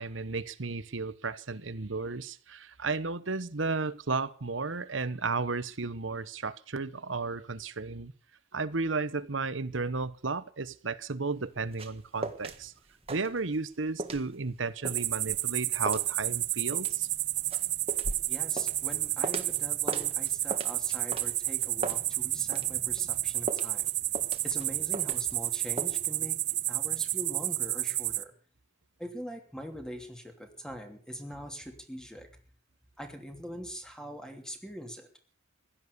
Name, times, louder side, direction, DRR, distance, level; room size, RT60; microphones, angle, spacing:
voice 1, 0.0-8.1 8.5-12.7 13.1-17.1, right 4 dB, 85° right, 1.1 m, -33 dB
sound 1, 11.3-12.6 12.9-13.7 14.0-19.6 19.9-22.7 23.0-25.5 25.8-26.0, right 2 dB, 30° right, 1.7 m, -38 dB
sound 2, 14.8-28.2, right 16 dB, 60° right, 0.8 m, -31 dB
voice 2, 18.3-23.9 24.4-28.3 29.0-32.3 33.0-35.1, equal, 5° left, 2.8 m, -43 dB
16.0 x 12.0 x 6.9 m
head